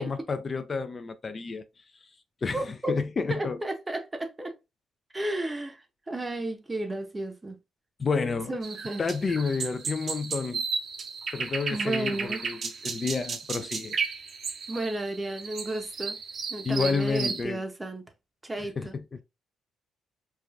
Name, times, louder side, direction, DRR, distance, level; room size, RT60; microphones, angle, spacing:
voice 1, 0.0-1.6 2.0-2.1 2.4-3.6 8.0-8.5 9.0-10.6 11.3-12.6 12.8-14.0 16.6-17.6 18.6-19.0, left 4 dB, 35° left, 0.3 m, -30 dB
voice 2, 2.5-3.0 3.3-4.6 5.1-7.6 8.5-9.0 11.7-12.4 14.7-16.2 16.5-18.0 18.4-19.0, right 1 dB, 20° right, 0.6 m, -33 dB
sound 1, 8.6-17.4, right 5 dB, 60° right, 0.6 m, -34 dB
3.2 x 2.4 x 2.3 m
cardioid pair, 90°, 0 cm